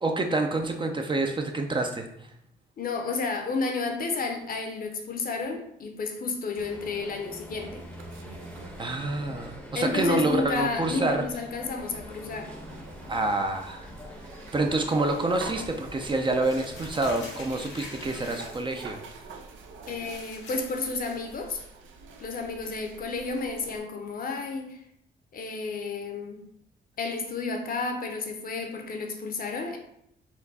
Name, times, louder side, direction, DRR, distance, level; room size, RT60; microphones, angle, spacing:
voice 1, 0.0-2.1 8.8-11.2 13.1-13.9 14.5-19.0, right 2 dB, 25° right, 4 dB, 0.5 m, -27 dB
voice 2, 2.8-7.9 9.7-12.5 19.9-21.6 22.2-24.8 25.3-26.4 27.0-29.8, left 4 dB, 45° left, 5 dB, 0.8 m, -31 dB
sound 1, 6.6-18.3, left 1 dB, 5° left, 0.8 m, -45 dB
sound 2, 7.6-23.8, right 4 dB, 75° right, 0.6 m, -46 dB
Crumpling crinkling, 16.4-18.9 19.3-19.4 19.8-21.5, left 3 dB, 85° left, 1.5 m, -46 dB
4.4 x 2.3 x 4.0 m, 0.75 s
cardioid pair, 90°, 20 cm